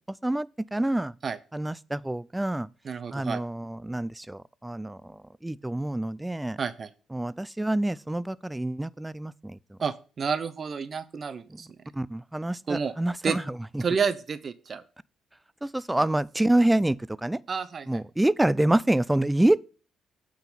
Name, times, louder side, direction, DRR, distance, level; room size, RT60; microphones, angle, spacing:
voice 1, 0.2-1.1 1.5-2.7 3.1-6.6 7.1-9.8 11.5-11.6 11.9-13.8 15.6-17.4 17.9-19.6, right 1 dB, 10° right, 0.3 m, -27 dB
voice 2, 2.8-3.4 6.6-6.9 9.8-11.7 12.7-12.9 13.2-13.4 13.8-14.8 17.5-18.0, right 6 dB, 45° right, 0.6 m, -30 dB
8.9 x 3.8 x 5.8 m
cardioid pair, 90°, 0 cm